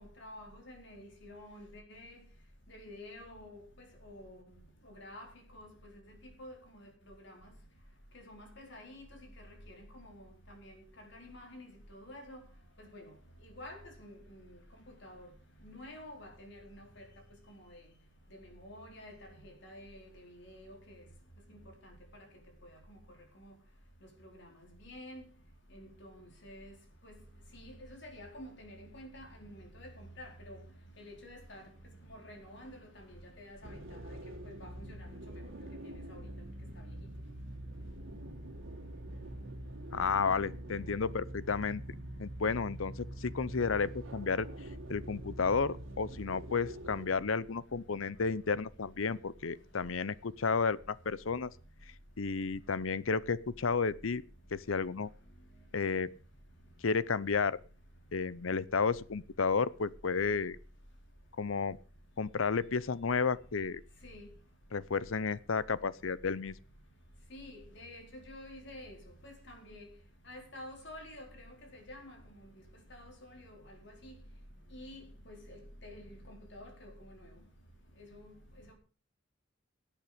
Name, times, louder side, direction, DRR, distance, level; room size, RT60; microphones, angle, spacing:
voice 1, 0.0-2.2 2.7-4.4 4.8-5.3 5.5-7.5 8.1-9.0 9.4-10.8 11.1-12.4 12.8-13.1 13.4-14.5 14.8-15.3 15.6-17.0 17.5-17.8 18.3-19.2 19.4-21.0 21.5-21.9 22.9-23.0 23.4-23.5 24.2-24.5 24.8-25.2 25.7-26.7 27.0-27.2 27.5-30.6 31.0-31.6 32.1-34.2 34.4-35.4 36.1-36.2 37.0-37.1 64.0-64.3 67.3-69.0 69.2-69.9 70.3-72.5 72.9-74.1 74.7-77.3 78.0-78.3 78.7-78.8, left 1 dB, 60° left, 4.3 m, -50 dB
sound 1, 33.6-47.1, right 1 dB, 75° right, 2.2 m, -45 dB
voice 2, 39.9-41.8 42.2-44.5 44.9-51.5 52.2-54.2 54.5-55.1 55.7-56.1 56.8-57.6 58.1-60.6 61.4-61.8 62.2-63.8 64.7-66.5, left 5 dB, 80° left, 0.7 m, -32 dB
17.0 x 8.7 x 5.1 m
head